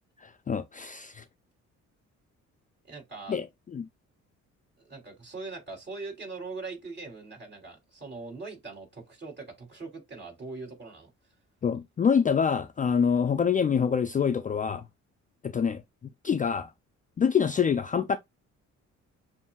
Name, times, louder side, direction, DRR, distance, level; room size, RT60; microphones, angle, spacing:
voice 1, 0.5-1.2 3.3-3.5 3.7-3.9 11.6-14.8 15.4-15.8 16.2-16.7 17.2-18.2, left 7 dB, 25° left, 0.3 m, -25 dB
voice 2, 2.9-3.4 4.8-11.1, right 3 dB, 35° right, 3.2 m, -41 dB
7.1 x 2.6 x 2.3 m
cardioid pair, 90°, 30 cm